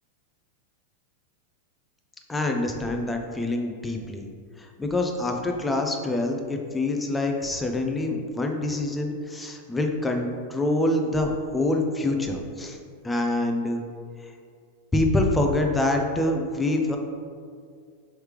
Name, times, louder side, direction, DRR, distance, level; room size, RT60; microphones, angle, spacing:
voice 1, 2.3-4.3 4.8-12.8 13.0-13.8 14.9-17.0, left 2 dB, 10° left, 2 dB, 0.4 m, -25 dB
3.2 x 3.2 x 4.7 m, 2.2 s
supercardioid pair, 150°, 0 cm